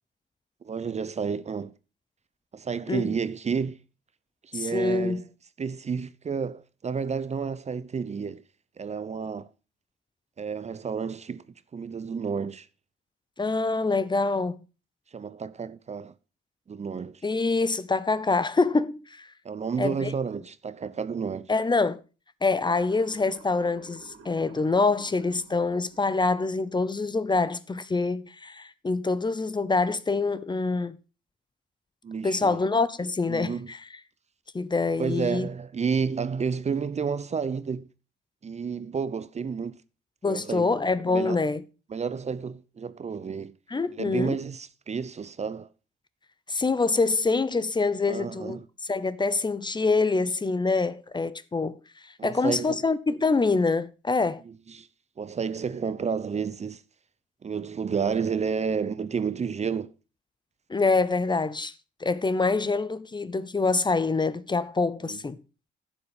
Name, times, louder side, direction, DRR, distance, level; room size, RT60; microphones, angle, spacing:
voice 1, 0.6-1.7 2.5-3.8 4.4-5.2 5.6-8.4 8.8-9.5 10.4-11.4 11.7-12.7 15.1-16.1 16.7-17.2 19.4-21.5 32.0-32.6 33.3-33.7 35.0-37.9 38.4-39.8 40.2-40.7 41.1-41.4 41.9-43.5 44.0-45.7 48.1-48.7 52.2-52.8 54.5-54.9 55.2-56.8 57.4-59.9 65.0-65.2, right 6 dB, 35° right, 0.7 m, -31 dB
voice 2, 4.5-5.2 13.4-14.6 17.2-19.3 19.8-20.1 21.5-22.0 22.4-31.0 32.2-33.8 34.5-35.5 40.2-41.6 43.7-44.4 46.5-48.6 48.9-51.8 52.0-54.4 60.7-61.7 62.0-65.4, left 3 dB, 25° left, 0.7 m, -25 dB
Motor vehicle (road) / Siren, 22.6-26.8, right 5 dB, 85° right, 2.3 m, -52 dB
11.0 x 7.2 x 5.2 m
cardioid pair, 75°, 20 cm